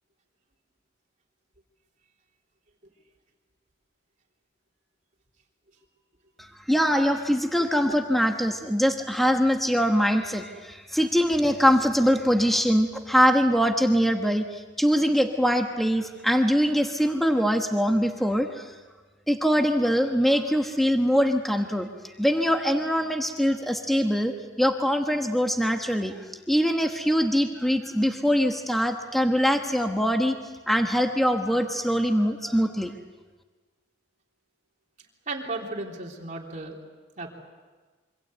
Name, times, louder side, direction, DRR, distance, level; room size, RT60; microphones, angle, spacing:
voice 1, 6.4-18.8 19.3-26.1 26.5-30.3 30.7-32.9, equal, ahead, 4 dB, 1.2 m, -23 dB
voice 2, 35.3-36.8 37.2-37.3, right 2 dB, 40° right, 0 dB, 3.4 m, -34 dB
26.5 x 25.0 x 8.0 m, 1.3 s
head